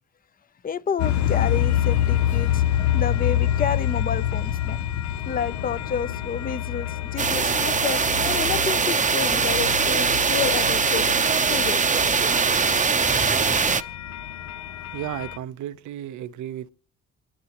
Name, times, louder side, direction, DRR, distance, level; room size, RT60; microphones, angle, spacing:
voice 1, 0.6-2.6 2.9-4.8 5.2-11.2 11.5-12.1, left 7 dB, 30° left, 0.6 m, -30 dB
sound 1, 1.0-15.4, left 11 dB, 70° left, 0.7 m, -27 dB
sound 2, 7.2-13.8, right 5 dB, 25° right, 0.7 m, -22 dB
voice 2, 14.9-16.7, right 12 dB, 75° right, 0.6 m, -33 dB
28.0 x 12.0 x 2.9 m
cardioid pair, 90°, 30 cm